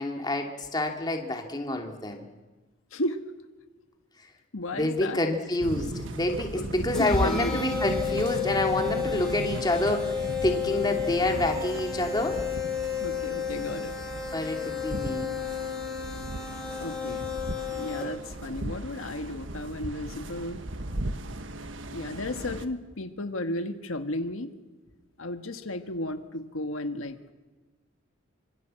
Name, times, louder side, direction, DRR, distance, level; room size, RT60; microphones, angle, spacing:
voice 1, 0.0-2.2 4.7-12.4 14.3-15.4, left 1 dB, 20° left, 3 dB, 2.5 m, -28 dB
voice 2, 2.9-3.2 4.5-5.2 6.5-7.6 13.0-13.9 16.1-16.2 16.8-17.3 17.8-20.6 21.9-24.5 25.2-27.3, left 1 dB, 85° left, 7 dB, 1.6 m, -33 dB
sound 1, 5.6-22.7, right 1 dB, 65° right, 1.5 m, -37 dB
sound 2, 6.9-18.3, left 7 dB, 5° left, 6.5 m, -32 dB
25.5 x 25.0 x 7.7 m, 1.2 s
head